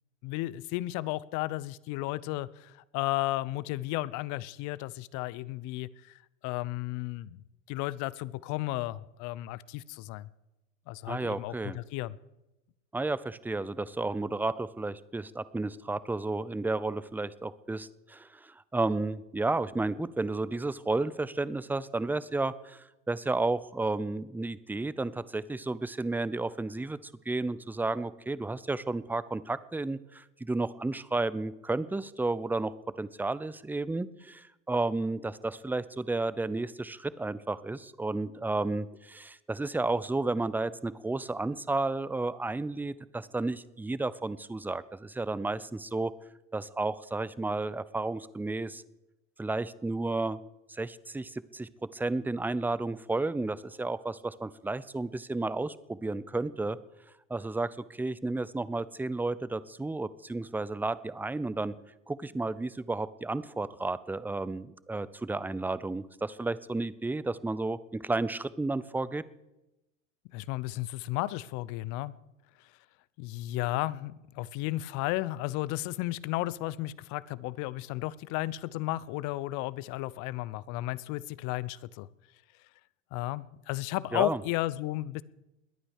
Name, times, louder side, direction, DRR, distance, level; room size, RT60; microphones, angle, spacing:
voice 1, 0.2-7.4 7.7-10.3 10.9-12.2 70.3-72.1 73.2-82.1 83.1-85.2, left 17 dB, 50° left, 20 dB, 0.8 m, -34 dB
voice 2, 11.1-11.8 12.9-32.7 33.0-46.1 46.5-48.8 49.4-50.4 50.7-56.8 57.3-61.7 62.1-69.2 84.1-84.4, right 2 dB, 5° right, 17 dB, 0.6 m, -32 dB
21.5 x 8.9 x 6.6 m, 0.96 s
hypercardioid pair, 95°, 37 cm